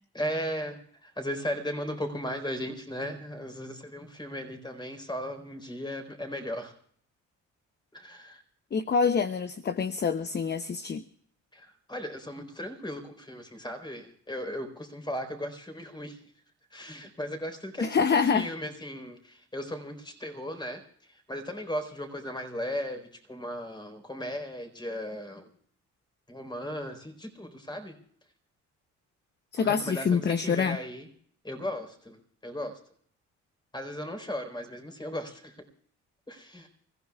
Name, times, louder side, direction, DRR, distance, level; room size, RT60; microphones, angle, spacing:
voice 1, 0.1-6.7 7.9-8.4 11.5-16.2 16.7-25.5 26.3-28.0 29.6-31.1 31.4-32.8 33.7-35.5 36.3-36.7, equal, 15° left, 6 dB, 4.1 m, -36 dB
voice 2, 8.7-11.0 17.8-18.5 29.5-30.8, left 6 dB, 35° left, 11 dB, 0.8 m, -26 dB
29.5 x 15.5 x 2.4 m, 0.62 s
cardioid pair, 90°, 30 cm